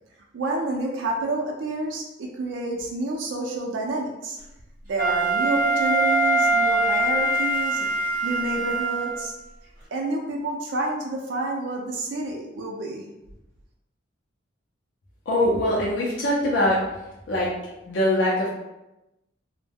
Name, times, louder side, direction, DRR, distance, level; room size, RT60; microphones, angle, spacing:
voice 1, 0.3-4.4 4.9-7.9 8.2-9.3 9.9-13.1, right 2 dB, 75° right, 0 dB, 0.4 m, -29 dB
Wind instrument woodwind instrument, 5.0-9.3, right 2 dB, 45° right, 0.8 m, -23 dB
voice 2, 15.3-16.8 17.3-17.5 17.9-18.5, left 1 dB, 70° left, -5 dB, 0.5 m, -22 dB
2.1 x 2.1 x 3.4 m, 0.95 s
head